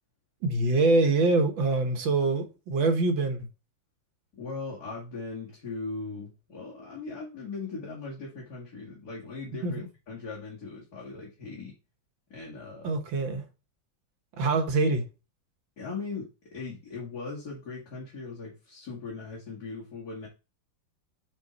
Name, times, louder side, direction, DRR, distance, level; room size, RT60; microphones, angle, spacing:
voice 1, 0.4-3.5 9.6-9.7 12.8-13.4 14.4-15.0, right 3 dB, 90° right, 2.0 m, -24 dB
voice 2, 4.3-11.8 12.3-12.9 13.3-13.4 15.8-20.3, left 4 dB, 55° left, 2.8 m, -39 dB
7.8 x 4.6 x 4.1 m
omnidirectional pair, 2.0 m